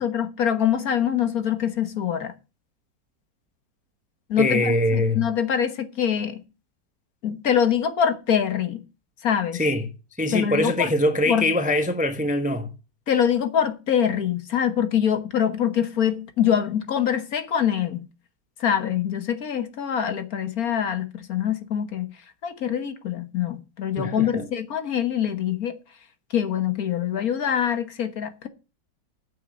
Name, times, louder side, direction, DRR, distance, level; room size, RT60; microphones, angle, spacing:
voice 1, 0.0-2.3 4.3-6.4 7.2-8.8 9.2-9.6 10.3-10.9 11.3-11.5 13.1-18.0 18.6-25.8 26.3-28.5, left 9 dB, 55° left, 1.5 m, -24 dB
voice 2, 4.4-5.3 9.5-9.9 10.2-12.7 24.0-24.5, left 1 dB, 5° right, 0.8 m, -23 dB
9.0 x 6.5 x 8.4 m
omnidirectional pair, 1.9 m